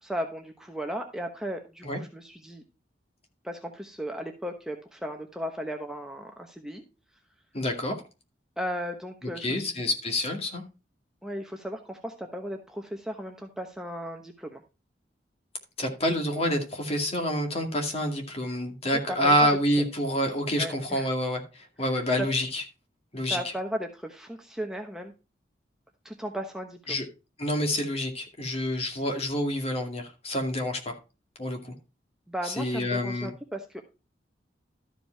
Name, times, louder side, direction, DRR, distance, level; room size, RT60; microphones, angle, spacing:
voice 1, 0.0-2.6 3.4-6.8 8.6-9.8 11.2-14.6 19.1-19.3 19.8-19.9 20.6-21.1 22.2-22.3 23.3-25.1 26.0-27.0 32.3-33.8, equal, 5° right, 1.0 m, -36 dB
voice 2, 7.5-8.0 9.4-10.6 15.8-22.6 23.1-23.4 26.9-27.0 27.4-31.0 31.4-31.7 32.4-33.3, equal, 35° left, 2.3 m, -27 dB
13.0 x 5.2 x 4.5 m
head